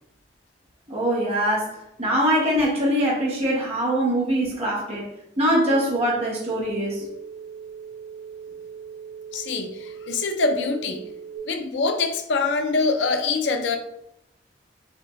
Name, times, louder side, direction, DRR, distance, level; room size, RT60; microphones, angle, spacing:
voice 1, 0.9-5.1 5.4-7.0, equal, 35° right, 1.0 m, -23 dB
sound 1, 5.7-11.4, right 7 dB, 80° right, 0.3 m, -40 dB
voice 2, 9.3-11.1 11.4-13.8, left 3 dB, 80° left, 0.5 m, -24 dB
4.2 x 2.7 x 3.0 m
head